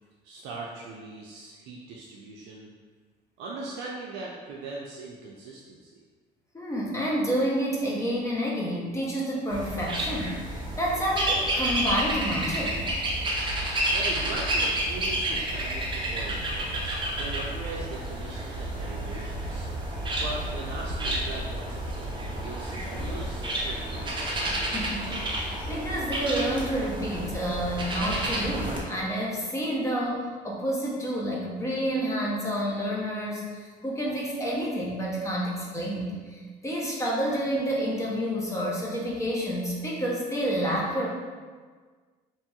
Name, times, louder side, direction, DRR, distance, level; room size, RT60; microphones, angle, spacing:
voice 1, 0.2-2.7 3.4-6.0 13.9-24.4, right 3 dB, 90° right, -3 dB, 0.4 m, -40 dB
voice 2, 6.5-12.9 24.4-41.1, equal, 15° left, -4 dB, 0.6 m, -29 dB
sound 1, 9.5-28.8, right 1 dB, 30° right, 0.6 m, -30 dB
2.9 x 2.8 x 2.2 m, 1.5 s
cardioid pair, 110°, 17 cm